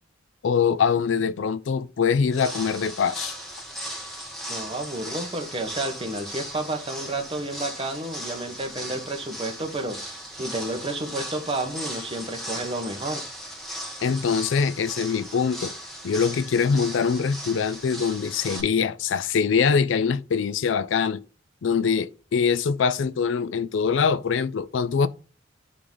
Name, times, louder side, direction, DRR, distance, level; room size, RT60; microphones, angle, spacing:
voice 1, 0.4-3.3 14.0-15.7 16.0-21.2 21.6-25.1, left 6 dB, 65° left, 0.4 m, -23 dB
sound 1, 2.3-18.6, equal, ahead, 1.8 m, -37 dB
voice 2, 4.5-13.2, right 2 dB, 30° right, 1.2 m, -31 dB
9.8 x 3.7 x 3.9 m
head